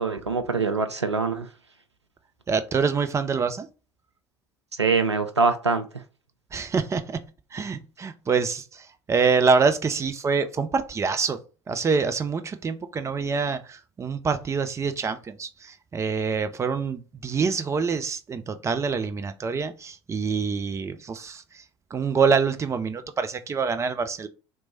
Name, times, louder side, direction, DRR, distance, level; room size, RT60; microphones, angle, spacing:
voice 1, 0.0-1.5 4.8-5.9, right 4 dB, 85° right, 0.4 m, -23 dB
voice 2, 2.5-3.7 6.5-7.2 7.5-11.4 11.7-21.4 21.9-24.3, right 5 dB, 20° right, 0.4 m, -25 dB
3.0 x 2.2 x 4.2 m
figure-of-eight pair, 65°, 14 cm